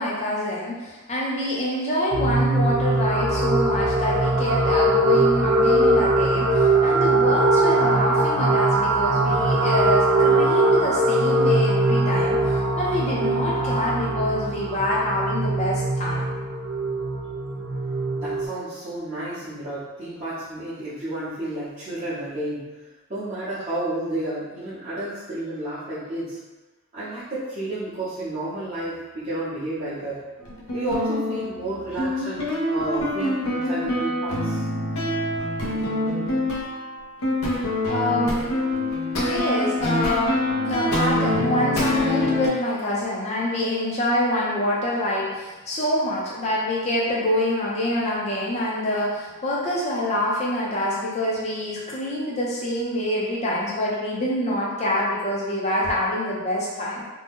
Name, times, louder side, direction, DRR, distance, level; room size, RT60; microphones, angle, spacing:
voice 1, 0.0-12.4 12.8-16.2 37.9-38.5 39.3-40.4 40.6-57.0, left 1 dB, 30° left, -5 dB, 0.6 m, -26 dB
sound 1, 2.1-18.5, right 2 dB, 60° right, 0.4 m, -21 dB
voice 2, 18.1-22.7 23.1-26.4 26.9-30.2 30.7-34.6, right 1 dB, 30° right, -13 dB, 0.7 m, -31 dB
sound 2, 30.4-42.5, left 1 dB, 75° left, 0.7 m, -25 dB
2.7 x 2.2 x 3.5 m, 1.2 s
head